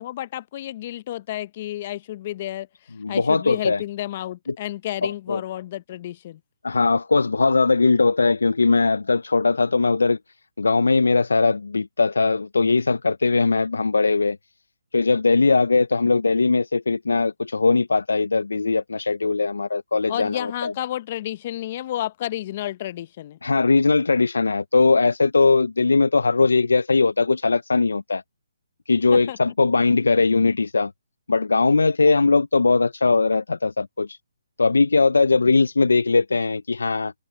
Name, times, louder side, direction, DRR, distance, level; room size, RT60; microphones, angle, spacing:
voice 1, 0.0-2.7 3.1-6.4 20.1-23.4 29.1-29.4, left 13 dB, 35° left, 0.7 m, -31 dB
voice 2, 3.0-3.8 4.5-4.6 5.0-5.4 6.6-10.2 10.6-14.4 14.9-20.7 23.4-28.2 28.9-30.9 31.3-34.2 34.6-37.1, left 3 dB, 85° left, 0.4 m, -20 dB
open air
hypercardioid pair, 155°, 0 cm